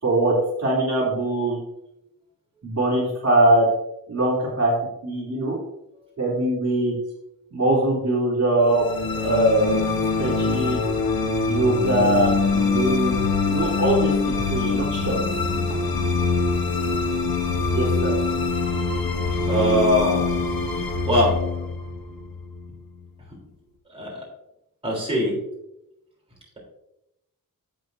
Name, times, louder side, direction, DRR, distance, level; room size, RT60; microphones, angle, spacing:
voice 1, 0.0-1.6 2.6-3.7 4.1-4.7 5.0-5.6 6.2-6.9 7.5-8.8 9.1-10.8 11.4-15.2 17.7-18.1, right 1 dB, 50° right, -5 dB, 3.2 m, -22 dB
sound 1, 8.7-23.0, left 4 dB, 85° left, 1.1 m, -24 dB
voice 2, 19.4-20.2 21.1-21.3 23.9-24.2 24.8-25.4, equal, 15° right, -4 dB, 3.5 m, -21 dB
11.0 x 8.4 x 2.6 m, 0.84 s
wide cardioid pair, 165°, 34 cm